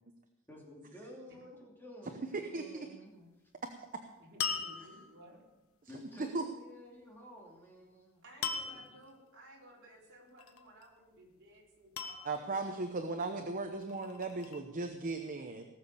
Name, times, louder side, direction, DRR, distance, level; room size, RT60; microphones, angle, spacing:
voice 1, 0.5-3.4 5.3-5.4 5.9-8.8, equal, 10° left, -2 dB, 2.6 m, -52 dB
voice 2, 2.3-2.6 5.8-5.9 6.3-6.4 12.2-15.7, right 3 dB, 40° right, 5 dB, 0.9 m, -37 dB
voice 3, 4.2-5.5 8.2-12.5, right 1 dB, 55° right, -3 dB, 4.4 m, -57 dB
sound 1, 4.4-5.3 8.4-9.0 10.4-10.9 12.0-12.7 13.7-14.6, left 5 dB, 65° left, 1.3 m, -39 dB
18.5 x 7.3 x 6.8 m, 0.99 s
head